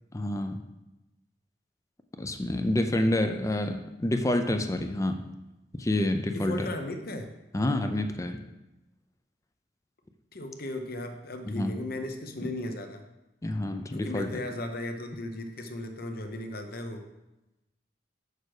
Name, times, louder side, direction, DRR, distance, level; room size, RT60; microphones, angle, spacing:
voice 1, 0.1-0.7 2.2-5.2 5.7-6.7 7.5-8.4 11.5-11.8 12.4-12.5 13.4-14.3, left 1 dB, 20° left, 7 dB, 0.4 m, -28 dB
voice 2, 6.3-7.3 10.3-13.0 13.9-17.0, left 1 dB, 55° left, 5 dB, 0.9 m, -36 dB
6.6 x 6.1 x 4.8 m, 0.98 s
head